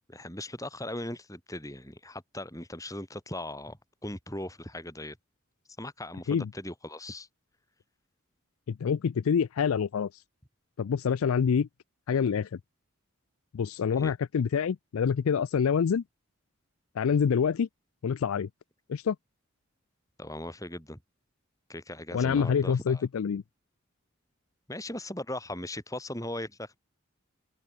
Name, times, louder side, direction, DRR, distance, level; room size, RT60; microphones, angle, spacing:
voice 1, 0.1-5.2 5.8-7.3 14.0-14.1 20.2-21.0 21.7-23.0 24.7-26.8, left 1 dB, 15° left, 7.6 m, -39 dB
voice 2, 8.7-10.1 10.8-11.7 12.1-12.5 13.5-16.0 17.0-17.7 18.0-18.5 18.9-19.2 22.1-23.4, left 6 dB, 80° left, 0.4 m, -26 dB
open air
head